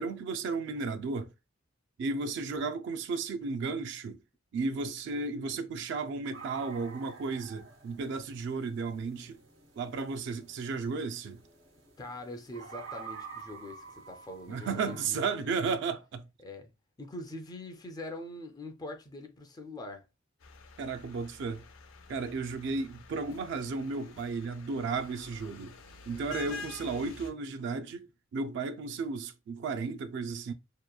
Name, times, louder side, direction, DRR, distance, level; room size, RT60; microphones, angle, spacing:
voice 1, 0.0-1.3 2.0-4.2 4.5-9.4 9.8-11.4 14.5-16.3 20.8-21.6 22.1-25.8 26.1-30.5, right 4 dB, 60° right, 0.3 m, -34 dB
sound 1, 6.3-15.1, right 5 dB, 90° right, 1.2 m, -49 dB
voice 2, 12.0-15.5 16.4-16.7 17.0-20.1 26.1-26.6, left 1 dB, 20° left, 0.3 m, -43 dB
sound 2, 20.4-27.3, left 4 dB, 85° left, 0.5 m, -48 dB
2.9 x 2.1 x 2.2 m
head